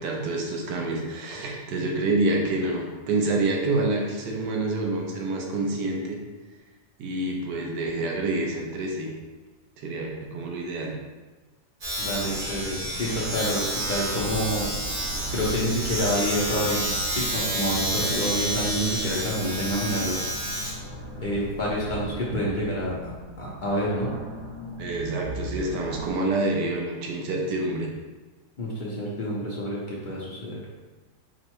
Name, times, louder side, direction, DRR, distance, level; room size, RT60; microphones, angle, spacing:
voice 1, 0.0-6.2 7.0-9.1 9.8-10.9 24.8-27.9, right 2 dB, 80° right, 0 dB, 1.4 m, -27 dB
Domestic sounds home sounds, 11.8-22.2, equal, 65° right, 2.1 m, -30 dB
voice 2, 12.0-14.6 15.3-16.8 17.1-20.3 21.2-23.1 23.4-24.1 28.6-30.7, equal, 65° left, -6 dB, 0.4 m, -28 dB
sound 1, 12.2-26.1, right 2 dB, 45° right, 1.2 m, -39 dB
4.9 x 2.1 x 4.5 m, 1.3 s
omnidirectional pair, 1.8 m